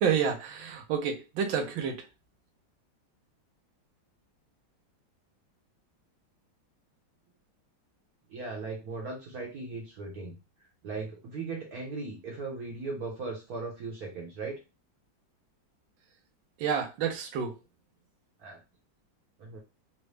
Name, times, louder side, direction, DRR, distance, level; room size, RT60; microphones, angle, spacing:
voice 1, 0.0-2.0 16.6-17.5, right 7 dB, 85° right, 4 dB, 1.5 m, -29 dB
voice 2, 8.3-10.4 10.8-14.6 18.4-18.6 19.4-19.6, right 3 dB, 60° right, 0 dB, 1.2 m, -38 dB
3.9 x 2.1 x 3.2 m, 0.27 s
omnidirectional pair, 2.1 m